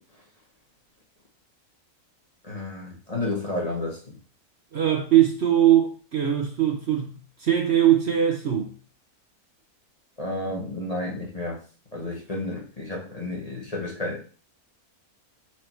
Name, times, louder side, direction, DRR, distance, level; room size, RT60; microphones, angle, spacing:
voice 1, 2.4-4.1 10.2-11.6 11.9-14.2, left 2 dB, 25° left, 1.4 m, -31 dB
voice 2, 4.7-8.7, right 11 dB, 50° right, 1.1 m, -21 dB
4.8 x 4.7 x 4.6 m
omnidirectional pair, 1.5 m